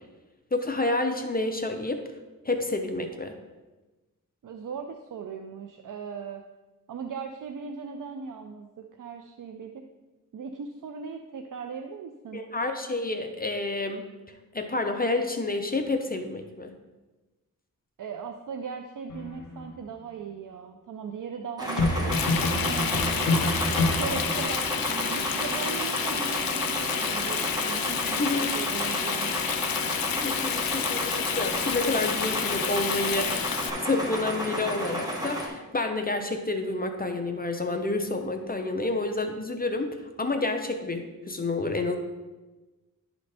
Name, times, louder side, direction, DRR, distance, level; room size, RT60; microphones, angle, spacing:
voice 1, 0.5-2.0 2.5-3.3 12.3-14.0 14.5-16.7 28.0-28.5 29.9-33.5 33.8-39.9 40.2-42.0, left 2 dB, 25° left, 5 dB, 0.6 m, -29 dB
voice 2, 4.4-6.4 6.9-9.8 10.3-12.4 18.0-24.8 25.1-29.3, right 6 dB, 65° right, 5 dB, 0.5 m, -38 dB
sound 1, 19.1-19.7 21.8-24.4, left 2 dB, 60° left, 1.5 m, -27 dB
sound 2, 21.6-35.5, equal, 10° right, 1.3 m, -32 dB
Frying (food), 22.1-33.7, left 8 dB, 85° left, 0.5 m, -30 dB
11.0 x 4.0 x 3.3 m, 1.2 s
wide cardioid pair, 100°, 34 cm